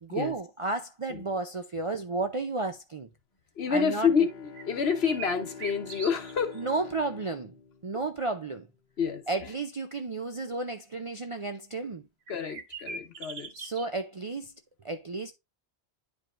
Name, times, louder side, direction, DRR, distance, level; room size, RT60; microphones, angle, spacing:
voice 1, 0.0-3.1 3.7-4.1 6.6-7.5 7.8-8.7 9.3-12.1 13.6-14.5 14.8-15.3, right 3 dB, 45° right, 0.4 m, -32 dB
voice 2, 3.6-6.6 9.0-9.2 12.3-13.5, left 6 dB, 65° left, 1.2 m, -28 dB
Bowed string instrument, 3.6-8.6, left 4 dB, 45° left, 1.1 m, -46 dB
sound 1, 4.5-6.6 6.9-7.0 12.3-13.9, right 4 dB, 65° right, 1.3 m, -41 dB
10.5 x 4.8 x 2.5 m
omnidirectional pair, 1.1 m